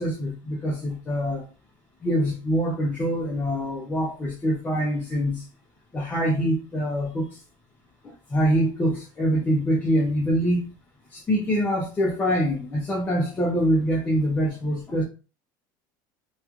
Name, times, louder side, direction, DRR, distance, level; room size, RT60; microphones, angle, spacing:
voice 1, 0.0-1.5 2.0-5.5 5.9-7.3 8.0-10.6 11.1-15.0, equal, 15° left, 0.5 m, -24 dB
2.9 x 2.2 x 2.4 m
cardioid pair, 165°, 9 cm